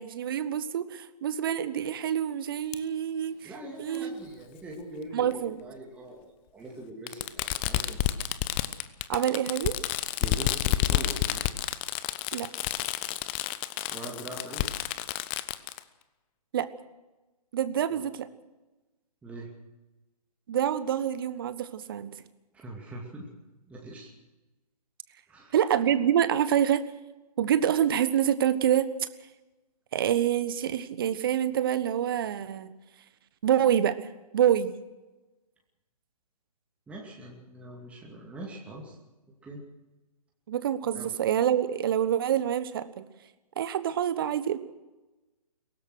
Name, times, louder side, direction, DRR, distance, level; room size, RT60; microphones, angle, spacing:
voice 1, 0.0-3.5 3.8-4.3 5.1-5.6 9.1-9.7 12.3-12.5 16.5-16.7 17.5-18.3 20.5-22.2 25.5-26.8 27.4-29.1 29.9-32.7 33.4-34.0 34.3-34.7 40.5-43.0 43.6-44.6, right 10 dB, 35° right, 14 dB, 1.2 m, -26 dB
Fireworks, 2.7-2.8 3.9-4.0 5.3-5.4 7.1-15.8, left 14 dB, 15° left, 0.6 m, -30 dB
voice 2, 3.4-5.4 5.6-8.0 10.2-11.5 13.9-14.7 17.9-18.0 19.2-19.5 22.5-23.3 23.7-24.1 25.3-25.6 36.9-39.0 39.4-39.6 40.9-41.1, right 1 dB, 5° right, -2 dB, 2.5 m, -42 dB
23.0 x 18.0 x 6.3 m, 1.1 s
figure-of-eight pair, 135°, 20 cm